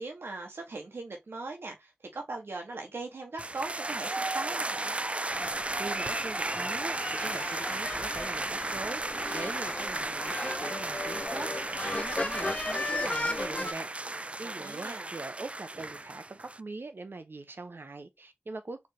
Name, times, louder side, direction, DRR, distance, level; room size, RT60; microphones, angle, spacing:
voice 1, 0.0-4.9 14.4-15.1, right 3 dB, 85° right, 1.1 m, -40 dB
sound 1, 3.4-16.6, right 2 dB, 35° right, 0.3 m, -34 dB
sound 2, 5.3-13.7, left 2 dB, 30° left, 0.5 m, -36 dB
voice 2, 5.7-18.9, right 3 dB, 70° right, 0.8 m, -42 dB
4.0 x 3.4 x 3.8 m
cardioid pair, 40°, 4 cm